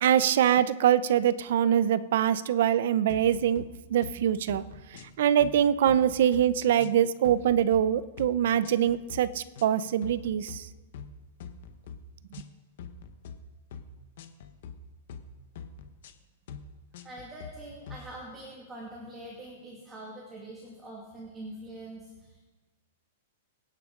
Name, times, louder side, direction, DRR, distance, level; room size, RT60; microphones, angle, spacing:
voice 1, 0.0-4.6 5.2-10.6, right 10 dB, 60° right, 16 dB, 0.6 m, -24 dB
sound 1, 3.1-3.7 4.0-4.2 4.5-5.1 5.4-6.4 6.8-7.8 8.2-8.4 8.6-9.2 9.5-9.7 10.0-10.6 10.9-11.1 11.4-12.0 12.3-12.5 12.8-13.4 13.7-13.9 14.2-14.7 15.1-15.3 15.5-16.1 16.5-16.7 16.9-17.5 17.9-18.0, left 7 dB, 60° left, 1.2 m, -43 dB
voice 2, 17.0-22.4, right 1 dB, 10° right, -3 dB, 2.2 m, -44 dB
24.0 x 10.0 x 3.8 m, 1.3 s
supercardioid pair, 165°, 0 cm